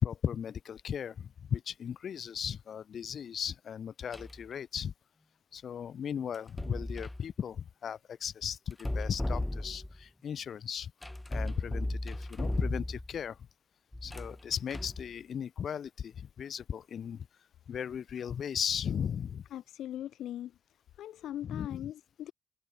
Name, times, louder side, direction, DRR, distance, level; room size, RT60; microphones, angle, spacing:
voice 1, 0.0-4.9 5.5-10.9 11.3-13.4 14.0-17.3 17.7-19.4 21.4-21.9, left 8 dB, 55° left, 3.8 m, -36 dB
sound 1, 4.1-4.4 6.3-7.2 8.7-10.0 11.0-13.2 13.9-15.1, left 1 dB, 10° left, 1.1 m, -35 dB
voice 2, 19.5-20.5 21.0-22.3, left 12 dB, 75° left, 1.9 m, -40 dB
cardioid pair, 90°, 0 cm